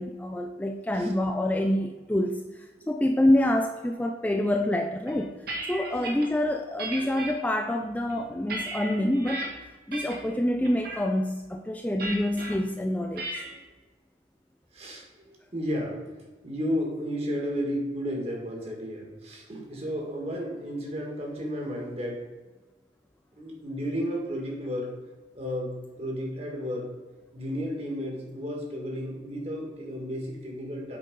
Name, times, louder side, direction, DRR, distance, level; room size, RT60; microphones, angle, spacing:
voice 1, 0.0-5.3 5.7-9.4 9.9-13.4, left 1 dB, 10° left, 3 dB, 0.4 m, -27 dB
sound 1, 5.1-6.3 6.8-7.3 7.9-9.5 9.9-10.3 10.6-11.0 12.0-12.5 13.2-13.5, right 2 dB, 60° right, 1.6 m, -35 dB
voice 2, 14.7-16.0 16.4-22.2 23.4-24.9 25.3-26.9 27.3-31.0, equal, 35° right, 0 dB, 1.8 m, -33 dB
8.3 x 4.0 x 5.3 m, 1.2 s
head